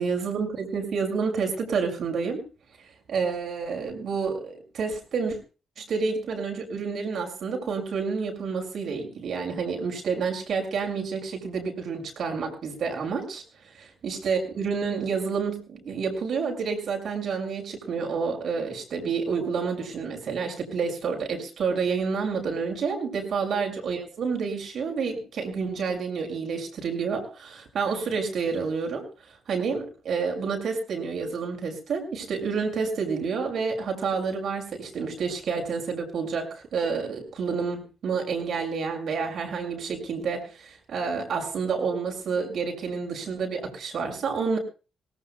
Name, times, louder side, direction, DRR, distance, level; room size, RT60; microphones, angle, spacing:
voice 1, 0.0-2.4 3.1-5.4 5.8-13.4 13.7-29.1 29.5-44.6, right 5 dB, 70° right, 3 dB, 6.6 m, -29 dB
25.5 x 18.0 x 2.4 m, 0.34 s
cardioid pair, 70°, 0 cm